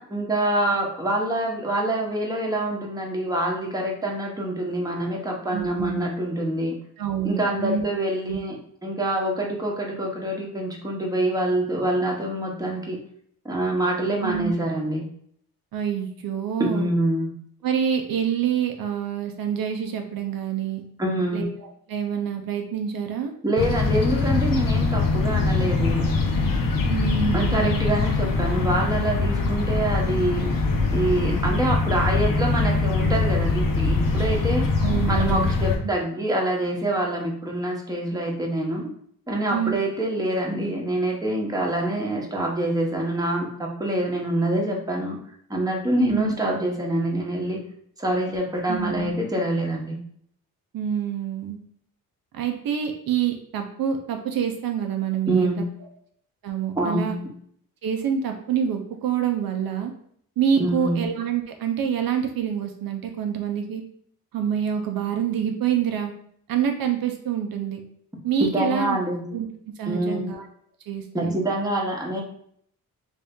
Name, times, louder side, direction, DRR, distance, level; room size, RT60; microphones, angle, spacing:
voice 1, 0.0-6.7 7.2-13.0 13.4-15.0 16.6-17.3 21.0-21.4 23.4-26.0 27.3-30.5 30.9-34.7 35.1-38.9 39.3-45.2 45.5-47.6 48.0-50.0 55.3-55.6 56.8-57.2 60.6-61.0 68.4-69.2 69.9-70.2 71.1-72.2, right 1 dB, 10° right, -1 dB, 0.9 m, -25 dB
voice 2, 5.5-6.0 7.0-7.8 8.3-8.4 14.2-14.5 15.7-16.9 17.6-20.8 21.3-23.3 26.9-27.8 34.8-35.5 39.5-39.8 46.0-46.3 48.7-49.1 50.7-51.6 52.3-55.7 56.4-57.2 57.8-59.9 60.4-63.8 64.3-66.1 66.5-67.8 68.2-69.0 69.3-69.5 69.8-70.4 70.9-71.3, right 8 dB, 70° right, 4 dB, 0.6 m, -26 dB
sound 1, 23.6-35.8, left 3 dB, 65° left, 0.8 m, -23 dB
3.3 x 2.7 x 3.5 m, 0.65 s
cardioid pair, 100°, 36 cm